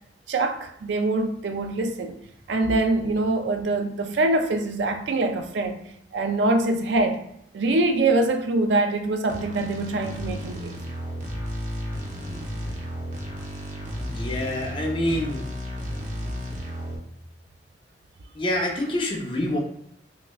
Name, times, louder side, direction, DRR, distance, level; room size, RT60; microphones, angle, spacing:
voice 1, 0.3-2.1 2.5-5.8 6.1-7.2 7.5-10.8, right 2 dB, 75° right, 0.4 m, -24 dB
sound 1, 9.3-17.0, equal, 45° right, 0.8 m, -33 dB
voice 2, 14.0-15.5 18.3-19.6, left 1 dB, 30° left, 0.6 m, -27 dB
5.8 x 2.1 x 2.3 m
head